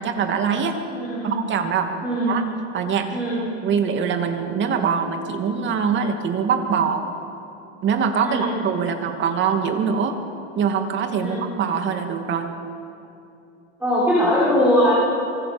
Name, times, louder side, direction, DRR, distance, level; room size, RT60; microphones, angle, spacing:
voice 1, 0.0-0.8 1.2-1.9 2.3-2.4 2.7-3.2 3.6-7.1 7.8-10.2 10.5-12.5, right 6 dB, 30° right, 5 dB, 2.6 m, -23 dB
voice 2, 0.9-1.3 2.0-2.4 3.1-3.5 8.2-8.5 11.2-11.4 13.8-14.9, equal, 5° right, -7 dB, 6.2 m, -21 dB
25.5 x 23.5 x 7.2 m, 2.7 s
supercardioid pair, 135°, 37 cm